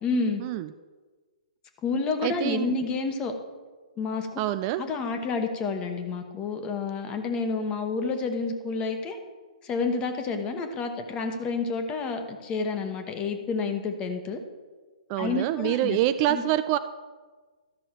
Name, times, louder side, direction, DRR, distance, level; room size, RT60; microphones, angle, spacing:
voice 1, 0.0-0.4 1.8-3.3 4.0-4.4 4.8-9.2 9.6-14.4 15.2-16.0 16.3-16.4, left 4 dB, 25° left, 6 dB, 1.1 m, -29 dB
voice 2, 2.2-2.7 4.4-4.8 15.1-16.8, right 13 dB, 35° right, 12 dB, 0.3 m, -26 dB
13.0 x 6.1 x 4.6 m, 1.4 s
figure-of-eight pair, 120°, 4 cm